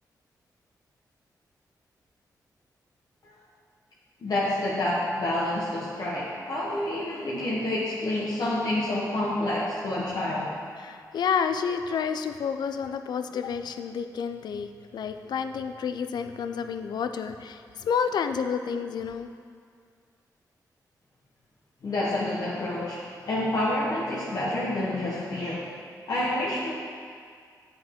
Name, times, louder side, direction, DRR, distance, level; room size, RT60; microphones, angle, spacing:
voice 1, 4.2-10.5 21.8-25.7 26.1-26.7, left 1 dB, 60° left, -7 dB, 1.0 m, -28 dB
voice 2, 10.8-19.3, left 6 dB, 75° left, 8 dB, 0.4 m, -30 dB
8.3 x 5.1 x 3.6 m, 2.1 s
cardioid pair, 100°, 7 cm